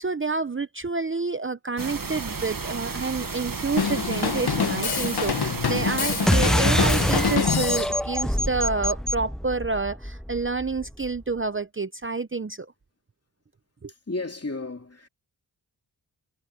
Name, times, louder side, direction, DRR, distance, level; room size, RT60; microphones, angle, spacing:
voice 1, 0.0-12.7 13.8-13.9, right 3 dB, 30° right, 0.7 m, -29 dB
sound 1, 1.8-7.4, right 4 dB, 50° right, 1.7 m, -33 dB
Drum kit, 3.8-7.9, left 5 dB, 65° left, 1.2 m, -26 dB
sound 2, 6.3-11.2, equal, ahead, 0.8 m, -25 dB
voice 2, 14.1-15.1, left 2 dB, 35° left, 2.7 m, -32 dB
wide cardioid pair, 60°, 42 cm